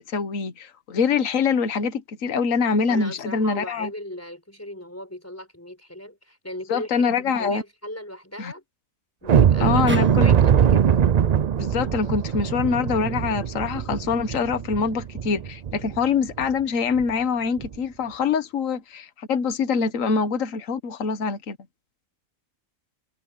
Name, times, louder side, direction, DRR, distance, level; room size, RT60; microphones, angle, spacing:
voice 1, 0.0-3.9 6.7-7.6 8.4-8.5 9.6-10.3 11.6-21.6, left 5 dB, 65° left, 1.7 m, -24 dB
voice 2, 2.9-8.6 9.2-11.0, left 1 dB, 10° left, 5.4 m, -38 dB
sound 1, 9.3-16.0 16.4-16.5 16.9-17.1 17.6-17.8, right 8 dB, 70° right, 0.3 m, -21 dB
sound 2, 9.9-13.1, right 1 dB, 10° right, 1.5 m, -38 dB
omnidirectional pair, 1.5 m